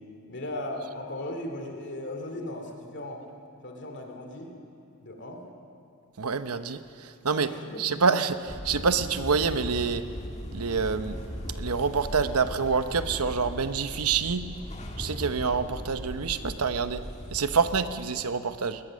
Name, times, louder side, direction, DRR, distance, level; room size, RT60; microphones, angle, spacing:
voice 1, 0.3-3.2 3.6-4.5 5.0-5.4 7.4-8.0, left 1 dB, 55° left, 3 dB, 2.5 m, -37 dB
voice 2, 6.2-7.5 7.8-10.0 10.5-11.2 11.5-14.4 15.0-17.0 17.3-18.8, right 5 dB, 85° right, 10 dB, 0.9 m, -27 dB
sound 1, 8.5-17.9, equal, 30° left, 1.9 m, -38 dB
20.0 x 20.0 x 6.4 m, 2.5 s
head